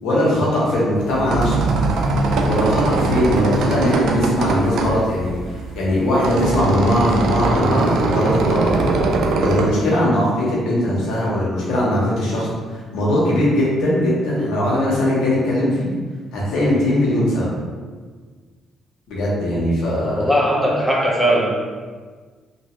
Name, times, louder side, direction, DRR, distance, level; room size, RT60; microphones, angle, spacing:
voice 1, 0.0-1.7 2.4-8.7 9.4-15.9 16.3-17.5 19.1-20.3, left 1 dB, 85° left, -6 dB, 1.1 m, -20 dB
sound 1, 1.0-9.7, right 2 dB, 80° right, 0.4 m, -21 dB
voice 2, 19.8-21.5, equal, 10° right, -4 dB, 0.8 m, -19 dB
3.0 x 2.6 x 3.2 m, 1.5 s
cardioid pair, 90°, 0 cm